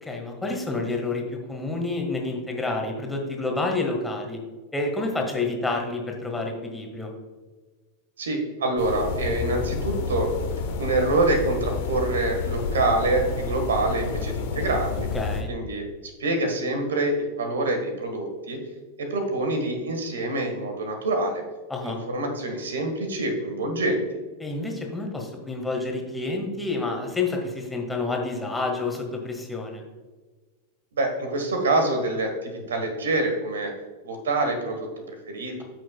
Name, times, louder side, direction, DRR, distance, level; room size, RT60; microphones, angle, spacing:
voice 1, 0.0-4.4 4.7-7.1 15.1-15.5 21.7-22.0 24.4-29.8, left 3 dB, 5° left, 1 dB, 1.6 m, -29 dB
voice 2, 8.2-10.3 10.8-15.1 15.5-15.8 16.2-18.6 19.0-21.4 21.8-24.0 31.0-33.7 34.0-35.6, right 2 dB, 65° right, 4 dB, 1.5 m, -26 dB
sound 1, 8.8-15.4, left 4 dB, 50° left, 1.1 m, -30 dB
13.5 x 6.2 x 2.3 m, 1.3 s
figure-of-eight pair, 90°, 0 cm